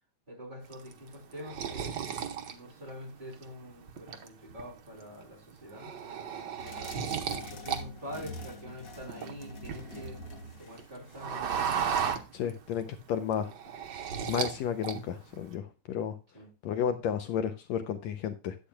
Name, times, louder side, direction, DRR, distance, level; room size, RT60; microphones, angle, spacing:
voice 1, 0.3-1.9 2.5-7.0 7.5-10.2 10.6-11.7 16.3-16.5, equal, 15° right, 3.3 m, -45 dB
sound 1, 0.7-3.4 3.9-4.6 5.0-5.2 5.5-7.8 8.1-10.2 10.5-12.8 13.1-14.6 14.8-15.4, right 7 dB, 80° right, 0.9 m, -34 dB
sound 2, 6.6-11.6, left 1 dB, 45° left, 1.2 m, -46 dB
voice 2, 12.3-13.5 14.3-16.1 16.6-18.6, left 8 dB, 75° left, 1.8 m, -32 dB
11.5 x 8.3 x 2.3 m
omnidirectional pair, 3.4 m